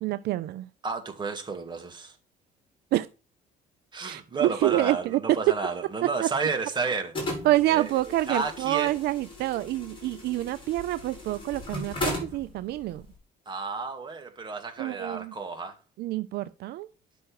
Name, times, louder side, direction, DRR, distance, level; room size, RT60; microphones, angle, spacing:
voice 1, 0.0-0.6 2.9-3.1 4.0-5.4 6.0-6.3 7.4-13.0 14.8-15.3 16.0-16.9, right 16 dB, 75° right, 0.5 m, -27 dB
voice 2, 0.8-2.2 3.9-7.1 7.7-8.9 13.5-15.8, right 4 dB, 25° right, 2.0 m, -32 dB
sound 1, 7.1-13.1, left 2 dB, 30° left, 6.1 m, -37 dB
10.0 x 6.3 x 4.7 m
cardioid pair, 110°, 17 cm